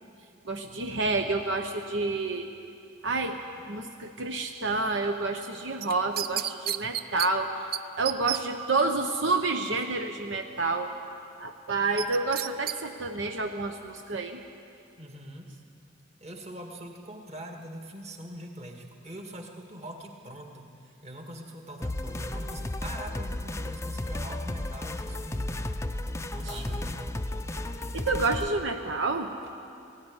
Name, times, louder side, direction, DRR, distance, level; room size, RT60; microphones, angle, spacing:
voice 1, 0.5-2.5 3.0-3.4 3.7-7.5 8.0-10.9 11.4-14.4 26.4-26.6 27.9-29.3, right 3 dB, 70° right, 5 dB, 0.9 m, -29 dB
sound 1, 5.8-7.3 7.7-7.8 8.1-8.4 12.0-12.8 13.2-13.3, right 11 dB, 50° right, 0.5 m, -30 dB
voice 2, 15.0-15.5 16.2-25.7 26.3-27.2, right 1 dB, 35° right, 2 dB, 2.0 m, -43 dB
sound 2, 21.8-28.5, left 1 dB, 15° left, 0.5 m, -33 dB
18.5 x 16.5 x 9.8 m, 2.5 s
head